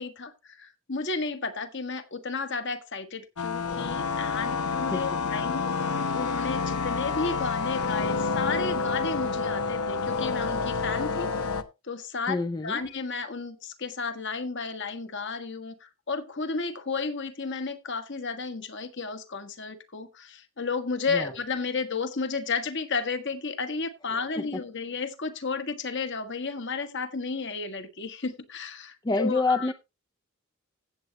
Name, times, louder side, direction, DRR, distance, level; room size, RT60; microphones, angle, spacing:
voice 1, 0.0-11.5 11.8-12.4 12.6-29.7, left 4 dB, 55° left, 1.5 m, -33 dB
sound 1, 3.4-11.6, left 4 dB, 85° left, 1.0 m, -28 dB
voice 2, 12.3-12.8 21.1-21.3 29.0-29.7, left 3 dB, 20° left, 0.5 m, -26 dB
16.0 x 7.9 x 2.9 m
head